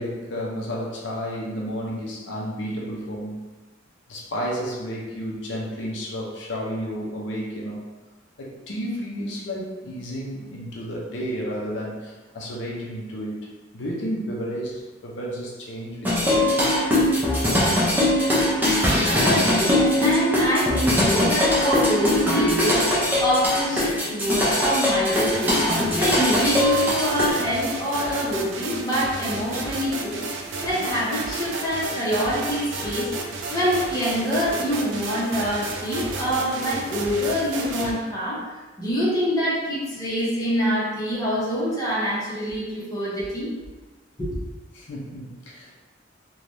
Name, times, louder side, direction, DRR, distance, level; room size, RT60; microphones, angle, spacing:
voice 1, 0.0-3.4 4.1-7.8 8.4-13.4 13.7-16.6 44.7-45.8, equal, 75° left, -3 dB, 0.6 m, -32 dB
sound 1, 16.0-27.3, left 1 dB, 10° right, 0.6 m, -21 dB
voice 2, 19.0-33.1 33.5-43.5 44.2-44.3, equal, 20° left, -8 dB, 0.9 m, -25 dB
sound 2, 25.1-37.9, right 3 dB, 80° right, 0.4 m, -32 dB
3.2 x 2.3 x 2.6 m, 1.2 s
head